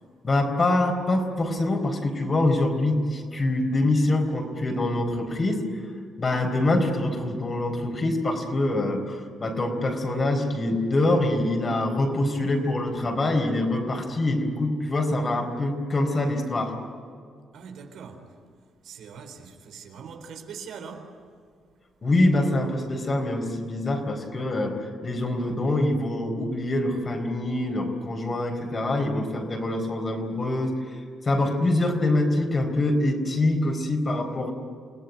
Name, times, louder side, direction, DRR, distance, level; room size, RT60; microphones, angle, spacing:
voice 1, 0.2-5.6 6.2-16.7 22.0-30.7 31.3-34.5, left 2 dB, 30° left, 4 dB, 4.3 m, -25 dB
voice 2, 17.5-18.3 18.8-21.2, right 6 dB, 80° right, 4 dB, 4.0 m, -42 dB
29.5 x 18.5 x 9.4 m, 2.2 s
cardioid pair, 135°, 0 cm